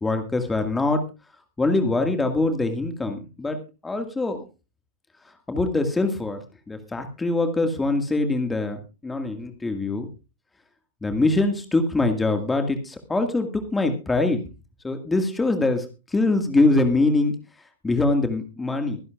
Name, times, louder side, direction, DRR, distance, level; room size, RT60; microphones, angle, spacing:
voice 1, 0.0-1.0 1.6-4.5 5.5-10.1 11.0-14.4 14.8-15.9 16.1-17.3 17.8-19.0, left 2 dB, 10° left, 6 dB, 1.9 m, -23 dB
23.5 x 11.0 x 2.5 m, 0.30 s
figure-of-eight pair, 95°, 0 cm